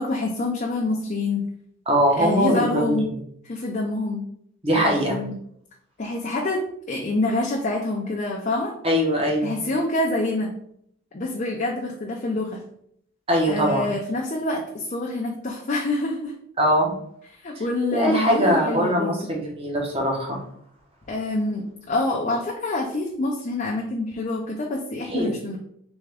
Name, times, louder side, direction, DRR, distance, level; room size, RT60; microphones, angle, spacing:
voice 1, 0.0-1.4 2.2-3.1 3.4-4.2 4.7-5.3 6.0-8.7 9.4-10.5 11.1-12.6 13.5-16.3 17.3-19.2 21.1-25.6, left 2 dB, 35° left, -1 dB, 0.5 m, -26 dB
voice 2, 1.9-2.9 4.6-5.2 8.8-9.5 13.3-13.9 16.6-16.9 17.9-20.4 25.1-25.3, equal, 25° right, -1 dB, 1.0 m, -21 dB
3.6 x 3.5 x 3.4 m, 0.68 s
head